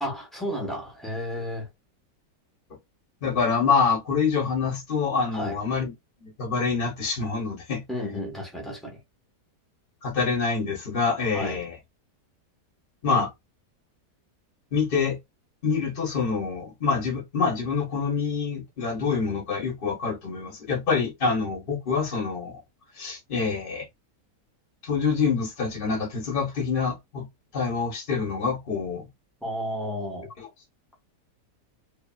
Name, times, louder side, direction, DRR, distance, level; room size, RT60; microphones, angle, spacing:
voice 1, 0.0-1.7 5.3-5.6 7.9-9.0 11.3-11.6 29.4-30.3, equal, ahead, 0.8 m, -32 dB
voice 2, 3.2-5.9 6.2-7.8 10.0-11.8 13.0-13.3 14.7-15.2 15.6-22.6 23.0-23.9 24.8-27.3 27.5-29.1 30.4-30.5, left 5 dB, 35° left, 1.2 m, -26 dB
2.9 x 2.6 x 2.3 m
omnidirectional pair, 1.9 m